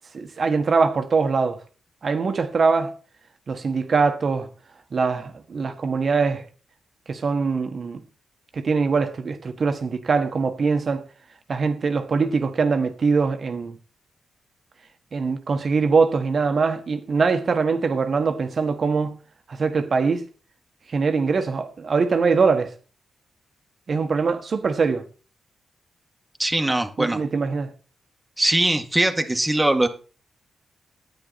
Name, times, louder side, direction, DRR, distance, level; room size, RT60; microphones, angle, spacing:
voice 1, 0.1-1.6 2.0-2.9 3.5-4.5 4.9-6.5 7.1-8.0 8.5-11.0 11.5-13.8 15.1-19.2 19.5-20.2 20.9-22.7 23.9-25.0 27.0-27.7, right 4 dB, 55° right, 1.5 m, -22 dB
voice 2, 26.4-27.2 28.4-29.9, right 1 dB, 15° right, 1.8 m, -21 dB
10.5 x 8.8 x 4.2 m
supercardioid pair, 55°, 0 cm